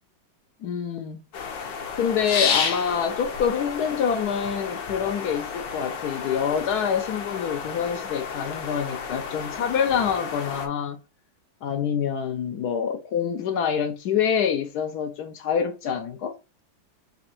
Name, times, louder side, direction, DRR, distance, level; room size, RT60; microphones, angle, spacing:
voice 1, 0.6-1.2 1.6-1.7 1.9-11.0 11.6-16.4, left 7 dB, 75° left, 1.1 m, -26 dB
sound 1, 1.3-10.7, left 6 dB, 90° left, 1.5 m, -31 dB
4.2 x 2.5 x 4.2 m
omnidirectional pair, 1.9 m